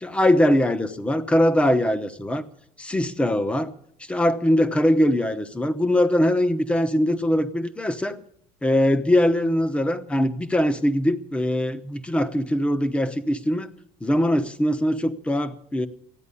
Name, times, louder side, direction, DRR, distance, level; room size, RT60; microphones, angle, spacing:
voice 1, 0.0-2.4 2.8-3.7 4.1-8.2 8.6-13.7 14.0-15.9, left 1 dB, 10° left, 11 dB, 0.9 m, -22 dB
14.0 x 9.5 x 9.7 m, 0.68 s
cardioid pair, 155°, 13 cm